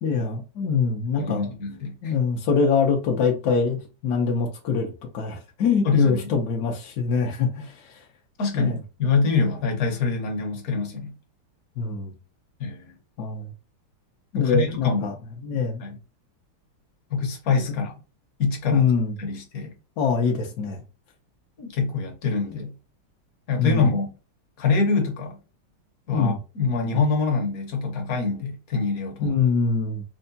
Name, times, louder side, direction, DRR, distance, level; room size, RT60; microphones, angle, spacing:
voice 1, 0.0-1.5 2.0-8.0 8.5-8.8 11.8-12.1 13.2-13.5 14.3-15.1 15.4-15.8 18.7-19.1 20.0-20.8 23.6-23.9 26.1-26.4 29.2-30.0, left 5 dB, 80° left, 0.8 m, -24 dB
voice 2, 1.2-2.1 5.8-6.2 8.4-11.2 12.6-12.8 14.3-15.1 15.8-16.0 17.1-17.9 18.4-18.8 19.2-19.7 21.6-22.7 23.5-24.1 24.6-25.4 26.1-29.3, left 4 dB, 60° left, 1.0 m, -25 dB
4.6 x 2.1 x 2.6 m
omnidirectional pair, 2.4 m